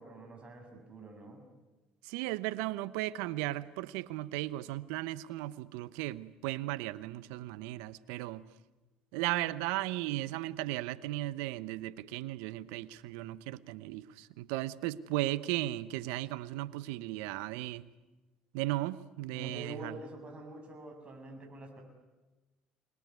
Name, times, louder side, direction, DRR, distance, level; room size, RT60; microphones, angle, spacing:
voice 1, 0.0-1.4 19.3-21.8, right 2 dB, 35° right, 4 dB, 7.8 m, -46 dB
voice 2, 2.0-8.4 9.1-17.9 18.5-20.0, right 16 dB, 75° right, 17 dB, 0.9 m, -36 dB
28.5 x 21.0 x 9.5 m, 1.1 s
hypercardioid pair, 65°, 3 cm